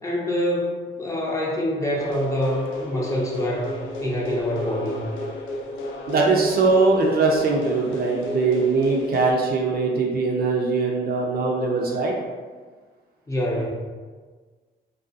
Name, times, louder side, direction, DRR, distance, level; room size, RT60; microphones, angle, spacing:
voice 1, 0.0-3.7 4.0-5.0 13.3-13.7, left 1 dB, 15° left, -5 dB, 0.6 m, -25 dB
sound 1, 2.0-9.3, left 1 dB, 75° left, 0.4 m, -33 dB
voice 2, 6.1-12.1, right 3 dB, 50° right, -1 dB, 0.5 m, -21 dB
2.4 x 2.3 x 2.5 m, 1.5 s
cardioid pair, 90°, 20 cm